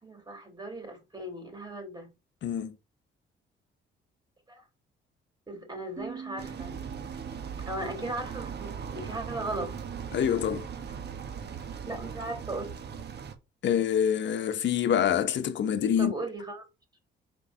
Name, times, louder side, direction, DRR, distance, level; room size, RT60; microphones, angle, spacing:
voice 1, 0.0-2.1 4.5-4.6 5.5-6.8 7.7-9.7 11.9-12.7 16.0-16.6, right 1 dB, 20° right, 4.0 m, -37 dB
voice 2, 2.4-2.7 10.1-10.7 13.6-16.1, left 9 dB, 65° left, 1.1 m, -26 dB
sound 1, 6.0-9.6, right 6 dB, 40° right, 1.9 m, -46 dB
sound 2, 6.4-13.4, right 7 dB, 55° right, 1.4 m, -39 dB
5.2 x 4.7 x 5.6 m
cardioid pair, 90°, 20 cm